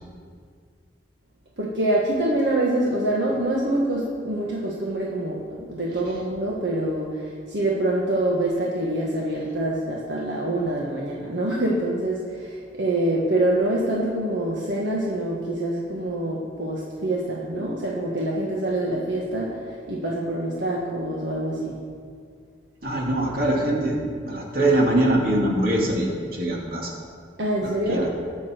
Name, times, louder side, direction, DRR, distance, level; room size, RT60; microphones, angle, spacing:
voice 1, 1.6-7.1 7.5-21.8 27.4-28.1, right 1 dB, 75° right, -3 dB, 1.6 m, -25 dB
voice 2, 22.8-24.0 24.2-26.9 27.6-28.1, right 1 dB, 55° right, -1 dB, 2.5 m, -23 dB
21.0 x 7.4 x 4.5 m, 2.1 s
head